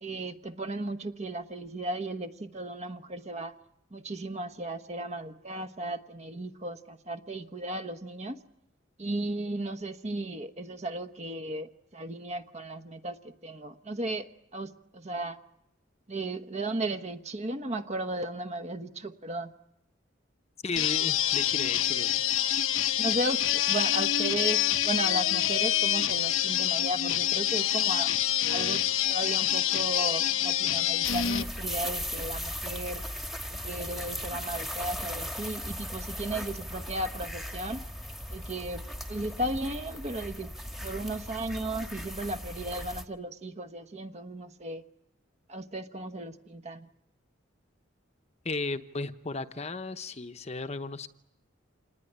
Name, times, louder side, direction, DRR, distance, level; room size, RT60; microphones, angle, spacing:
voice 1, 0.0-3.5 3.9-8.4 9.0-14.3 14.5-15.4 16.1-19.5 23.0-28.1 28.5-28.8 29.1-33.0 33.5-37.8 38.3-40.5 40.8-44.8 45.5-46.9, right 1 dB, 35° right, 1.1 m, -35 dB
voice 2, 20.6-22.2 48.4-51.1, left 3 dB, 35° left, 0.9 m, -35 dB
sound 1, 20.8-31.4, left 11 dB, 85° left, 0.9 m, -26 dB
sound 2, 31.0-43.0, equal, ahead, 1.4 m, -37 dB
27.5 x 19.5 x 9.9 m
head